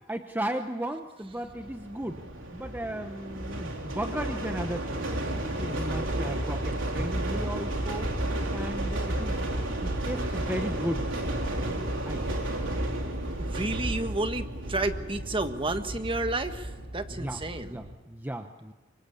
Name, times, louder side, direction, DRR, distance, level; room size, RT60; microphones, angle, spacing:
voice 1, 0.1-2.2 2.5-5.1 5.4-8.1 8.5-9.5 9.8-11.1 12.1-12.4 17.1-18.7, right 1 dB, 10° right, 6 dB, 1.0 m, -35 dB
sound 1, 1.4-17.9, right 1 dB, 80° right, 3.9 m, -32 dB
voice 2, 13.4-17.7, right 2 dB, 25° right, 8 dB, 1.5 m, -31 dB
26.5 x 24.5 x 8.6 m, 1.2 s
head